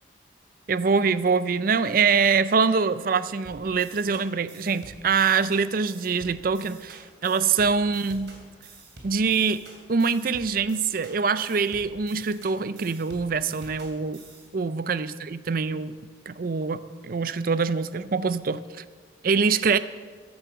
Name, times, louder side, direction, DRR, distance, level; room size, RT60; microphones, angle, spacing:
voice 1, 0.7-8.4 9.0-9.6 9.9-14.2 14.5-16.0 16.3-18.8 19.2-19.8, right 5 dB, 50° right, 15 dB, 0.5 m, -24 dB
sound 1, 3.4-14.5, right 2 dB, 70° right, 2.9 m, -48 dB
13.0 x 11.0 x 6.9 m, 1.5 s
head